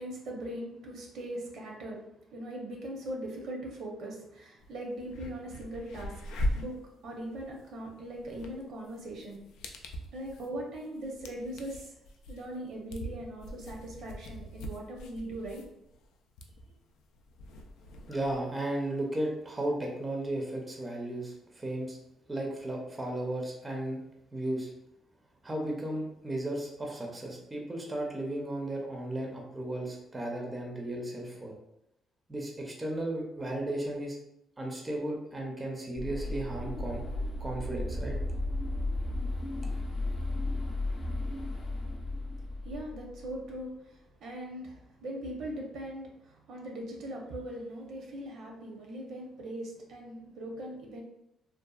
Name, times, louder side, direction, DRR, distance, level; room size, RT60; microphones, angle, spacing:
voice 1, 0.0-6.2 6.5-6.7 7.0-9.4 10.1-11.9 12.3-15.6 42.6-51.0, right 1 dB, 70° right, -1 dB, 0.7 m, -40 dB
sound 1, 4.6-4.7 5.0-18.4, equal, 85° left, 0.3 m, -41 dB
voice 2, 18.1-22.0 22.3-24.0 24.3-24.7 25.4-31.5 32.3-34.2 34.6-37.0 37.4-38.2, right 1 dB, 20° right, 0 dB, 0.5 m, -35 dB
sound 2, 36.0-43.4, left 2 dB, 35° left, 0.6 m, -34 dB
2.7 x 2.3 x 2.3 m, 0.82 s
cardioid pair, 110°, 0 cm